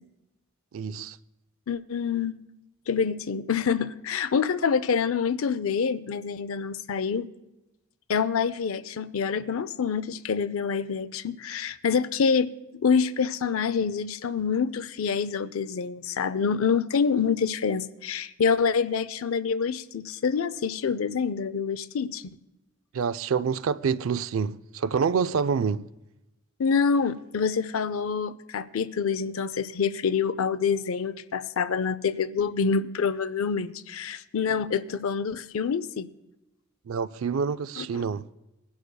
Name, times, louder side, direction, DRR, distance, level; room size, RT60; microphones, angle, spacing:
voice 1, 0.7-1.2 22.9-25.9 36.9-38.2, right 6 dB, 75° right, 0.4 m, -27 dB
voice 2, 1.7-2.4 2.9-7.3 8.1-12.5 12.7-22.2 26.6-36.1 37.8-38.0, left 6 dB, 75° left, 0.5 m, -26 dB
21.0 x 11.5 x 2.3 m
head